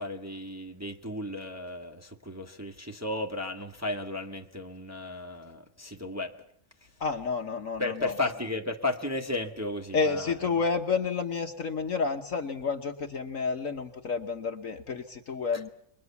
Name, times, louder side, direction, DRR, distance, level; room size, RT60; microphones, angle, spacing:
voice 1, 0.0-6.3 7.8-10.5 15.5-15.6, left 2 dB, 10° right, 2 dB, 1.5 m, -34 dB
voice 2, 7.0-8.1 9.9-15.7, left 5 dB, 50° left, 5 dB, 1.4 m, -30 dB
29.0 x 23.0 x 7.1 m, 0.70 s
omnidirectional pair, 2.0 m